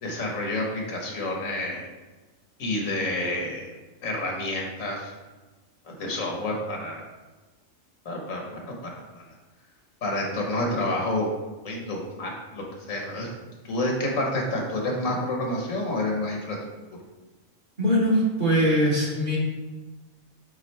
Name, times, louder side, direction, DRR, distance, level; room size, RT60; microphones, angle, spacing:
voice 1, 0.0-1.9 2.6-3.7 4.0-5.1 5.8-7.0 8.0-9.0 10.0-11.3 11.6-13.3 13.6-16.6, left 1 dB, 90° left, 0 dB, 1.6 m, -29 dB
voice 2, 17.8-19.4, equal, 40° right, -4 dB, 1.5 m, -21 dB
8.0 x 3.7 x 3.3 m, 1.2 s
omnidirectional pair, 1.3 m